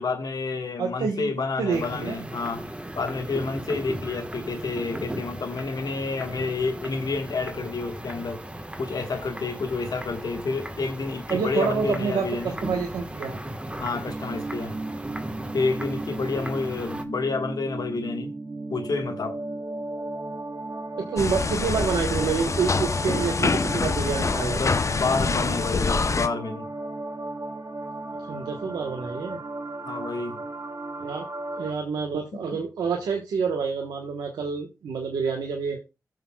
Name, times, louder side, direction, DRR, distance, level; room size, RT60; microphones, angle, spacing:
voice 1, 0.0-2.7 2.9-8.4 8.8-12.6 13.8-14.8 15.5-18.3 18.7-19.4 24.4-26.7 29.8-30.4, left 4 dB, 70° left, 1.4 m, -29 dB
voice 2, 0.8-2.2 11.3-13.4 21.0-24.6 28.3-29.4 31.0-31.2 31.6-35.8, right 5 dB, 90° right, 1.1 m, -28 dB
sound 1, 1.7-17.1, right 1 dB, 15° right, 1.3 m, -37 dB
sound 2, 14.0-31.7, right 2 dB, 45° right, 2.2 m, -35 dB
sound 3, 21.2-26.3, left 4 dB, 45° left, 0.7 m, -25 dB
15.0 x 6.6 x 2.3 m
cardioid pair, 40°, 7 cm